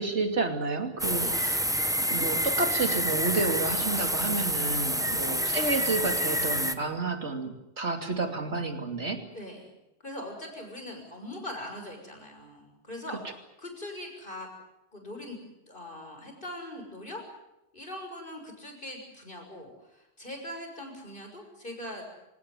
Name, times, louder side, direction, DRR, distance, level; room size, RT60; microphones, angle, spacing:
voice 1, 0.0-1.6 2.1-9.2, right 3 dB, 65° right, 6 dB, 3.1 m, -30 dB
sound 1, 1.0-6.7, equal, 5° right, 1.1 m, -28 dB
voice 2, 5.0-5.3 9.3-9.7 10.0-14.5 14.9-15.4 15.7-17.2 17.7-22.1, left 1 dB, 45° left, 3 dB, 6.6 m, -41 dB
26.5 x 17.5 x 9.5 m, 0.92 s
omnidirectional pair, 1.2 m